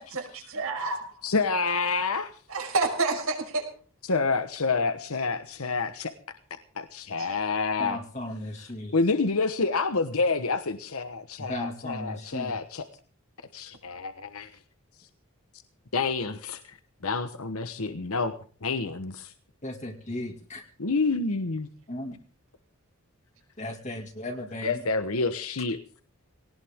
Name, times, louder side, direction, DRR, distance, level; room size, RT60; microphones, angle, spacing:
voice 1, 0.0-1.1 2.5-3.6 7.2-7.3, right 3 dB, 75° right, 3 dB, 5.4 m, -29 dB
voice 2, 1.2-2.3 4.0-6.1 6.8-8.0 8.9-12.9 13.5-14.5 15.9-16.8 17.0-18.3 18.6-19.3 20.8-21.7 24.6-25.8, left 4 dB, 80° left, 10 dB, 1.2 m, -28 dB
voice 3, 7.8-8.9 11.4-12.6 19.6-20.6 21.9-22.2 23.6-24.7, left 1 dB, 30° left, 3 dB, 2.1 m, -36 dB
19.0 x 18.5 x 3.6 m, 0.41 s
head